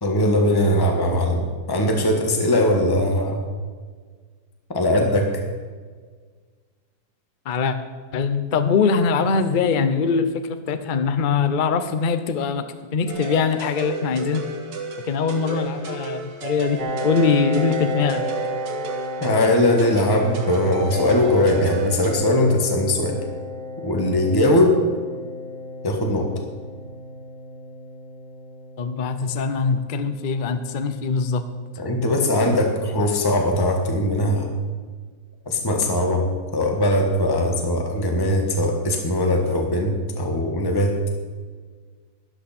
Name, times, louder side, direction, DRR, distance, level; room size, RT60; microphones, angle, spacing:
voice 1, 0.0-3.4 4.7-5.3 19.2-23.2 23.8-24.8 25.8-26.3 31.8-34.5 35.5-36.3 36.5-41.0, left 1 dB, 15° left, 2 dB, 1.3 m, -20 dB
voice 2, 7.5-7.8 8.1-12.7 12.9-14.4 15.0-18.2 28.8-31.4, left 5 dB, 70° left, 9 dB, 0.4 m, -22 dB
sound 1, 13.1-22.2, right 3 dB, 70° right, 1.9 m, -32 dB
Piano, 16.8-32.1, left 2 dB, 25° right, 1.2 m, -34 dB
12.5 x 11.5 x 4.3 m, 1.6 s
omnidirectional pair, 2.1 m